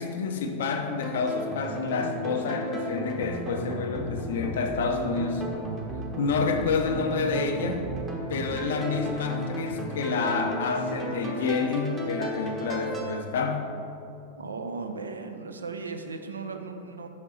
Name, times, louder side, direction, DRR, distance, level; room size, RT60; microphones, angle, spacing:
voice 1, 0.0-5.4 6.2-7.8 8.3-13.6, left 5 dB, 60° left, 5 dB, 0.5 m, -28 dB
sound 1, 1.0-13.0, right 2 dB, 20° right, 0.9 m, -34 dB
voice 2, 14.4-17.1, right 4 dB, 75° right, 6 dB, 0.4 m, -36 dB
5.4 x 4.9 x 3.9 m, 2.6 s
figure-of-eight pair, 90°, 0 cm